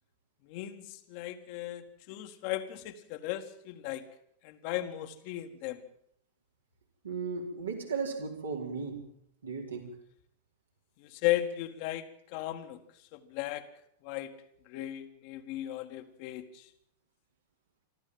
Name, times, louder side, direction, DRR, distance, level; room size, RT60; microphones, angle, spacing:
voice 1, 0.5-4.0 4.4-5.8 11.0-12.8 13.1-13.7 14.0-14.3 14.7-16.7, left 14 dB, 45° left, 7 dB, 1.8 m, -36 dB
voice 2, 7.0-9.0 9.4-9.9, right 5 dB, 75° right, 0 dB, 4.6 m, -35 dB
24.0 x 14.0 x 7.6 m, 0.69 s
figure-of-eight pair, 90°, 0 cm